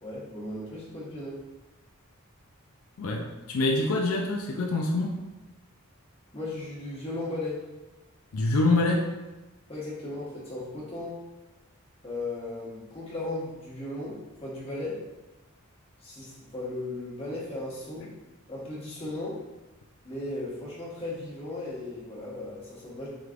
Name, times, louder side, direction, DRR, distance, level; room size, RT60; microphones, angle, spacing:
voice 1, 0.0-1.4 6.3-7.6 9.7-11.2 12.0-15.0 16.0-18.1 18.5-19.4 20.0-23.1, left 2 dB, 25° left, -8 dB, 1.3 m, -36 dB
voice 2, 3.0-5.2 8.3-9.1, left 2 dB, 80° left, 1 dB, 0.4 m, -25 dB
4.9 x 3.2 x 2.4 m, 1.1 s
head